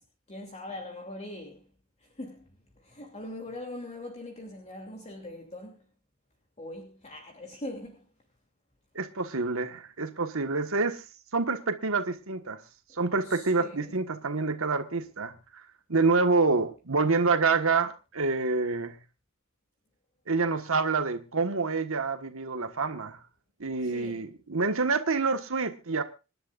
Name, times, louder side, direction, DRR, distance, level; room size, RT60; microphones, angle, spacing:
voice 1, 0.3-1.6 2.0-2.5 2.8-5.8 6.6-8.0 13.2-14.0 23.8-24.2, left 1 dB, 30° left, 2.8 m, -41 dB
voice 2, 8.9-11.0 11.3-12.6 13.0-15.3 15.9-19.0 20.3-23.2 23.6-26.0, right 4 dB, 70° right, 1.5 m, -27 dB
26.5 x 11.0 x 2.5 m
head